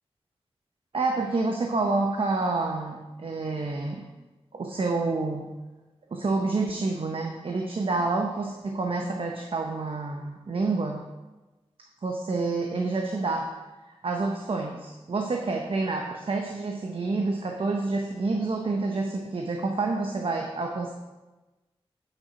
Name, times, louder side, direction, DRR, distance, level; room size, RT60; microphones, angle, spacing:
voice 1, 0.9-4.0 4.5-5.5 6.1-11.0 12.0-13.5 14.0-20.9, right 3 dB, 60° right, 2 dB, 0.7 m, -28 dB
8.9 x 4.4 x 5.0 m, 1.1 s
wide cardioid pair, 80°, 11 cm